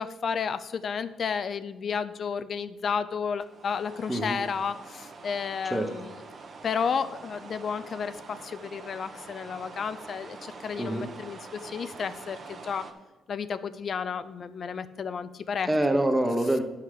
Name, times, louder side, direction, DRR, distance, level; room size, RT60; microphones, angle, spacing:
voice 1, 0.0-6.2 6.6-12.9 13.3-15.7, left 6 dB, 50° left, 13 dB, 0.5 m, -32 dB
sound 1, 3.4-12.9, right 4 dB, 45° right, 1.1 m, -45 dB
voice 2, 15.7-16.6, right 1 dB, 10° right, 5 dB, 1.1 m, -25 dB
10.0 x 5.7 x 4.9 m, 1.1 s
cardioid pair, 90°, 0 cm